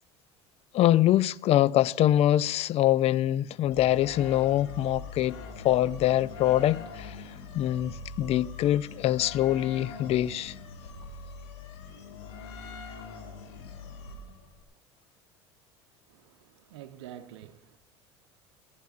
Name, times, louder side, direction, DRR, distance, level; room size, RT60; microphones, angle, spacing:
voice 1, 0.7-7.2 7.5-10.5, left 13 dB, 45° left, 0.4 m, -24 dB
horror chainsaw synth, 3.7-14.6, left 4 dB, 80° left, 2.2 m, -43 dB
voice 2, 16.1-17.8, right 11 dB, 75° right, 0.8 m, -47 dB
19.5 x 14.5 x 2.5 m
hypercardioid pair, 75°, 14 cm